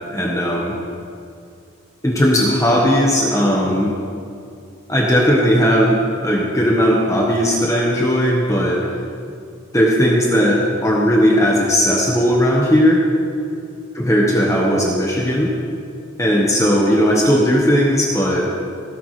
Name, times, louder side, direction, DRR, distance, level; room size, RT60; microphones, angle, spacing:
voice 1, 0.1-0.8 2.0-3.9 4.9-8.8 9.7-13.0 13.9-15.5 16.2-18.5, equal, 15° left, -3 dB, 1.3 m, -17 dB
17.0 x 13.0 x 3.3 m, 2.5 s
head